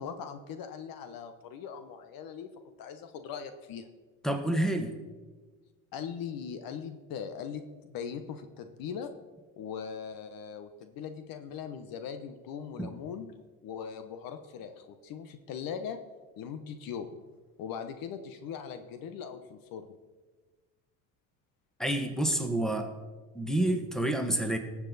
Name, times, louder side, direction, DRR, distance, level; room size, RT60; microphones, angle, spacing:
voice 1, 0.0-2.5 2.8-3.9 5.9-9.1 9.6-13.3 13.6-16.0 16.4-17.1 17.6-19.9, left 7 dB, 60° left, 9 dB, 1.0 m, -40 dB
voice 2, 4.2-4.9 12.8-12.9 21.8-23.0 23.3-24.6, right 1 dB, ahead, 6 dB, 1.6 m, -28 dB
18.5 x 7.3 x 4.1 m, 1.3 s
hypercardioid pair, 75°, 39 cm